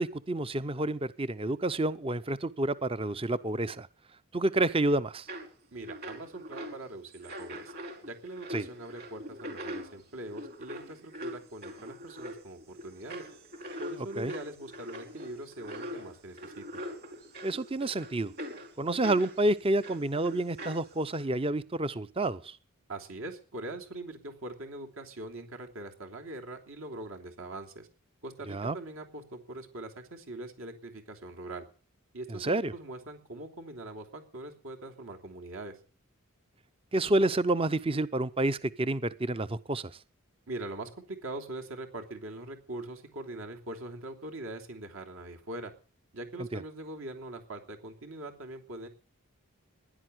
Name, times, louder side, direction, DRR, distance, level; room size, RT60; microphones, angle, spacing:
voice 1, 0.0-3.9 4.3-5.3 8.5-8.7 14.0-14.3 17.4-18.3 18.8-22.6 28.5-28.8 32.3-32.7 36.9-39.9 46.5-46.6, right 2 dB, 25° right, 15 dB, 0.7 m, -29 dB
sound 1, 5.3-5.5 5.8-6.8 7.1-19.4 19.8-21.2, equal, 45° right, 4.9 m, -42 dB
voice 2, 5.7-7.7 8.0-13.3 13.8-16.6 22.9-27.9 28.2-31.7 32.1-35.8 40.5-45.7 46.1-48.9, right 2 dB, 65° right, 3 dB, 3.1 m, -42 dB
16.0 x 11.0 x 7.9 m, 0.40 s
head